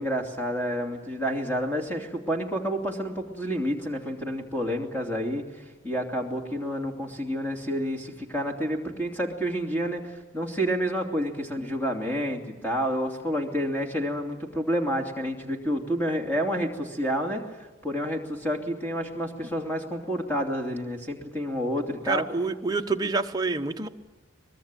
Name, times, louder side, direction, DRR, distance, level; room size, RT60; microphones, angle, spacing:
voice 1, 0.0-5.4 5.8-17.4 17.8-22.3, equal, 10° left, 2 dB, 2.8 m, -29 dB
voice 2, 22.1-23.9, right 3 dB, 20° right, 4 dB, 1.0 m, -27 dB
23.5 x 21.0 x 9.1 m, 1.2 s
head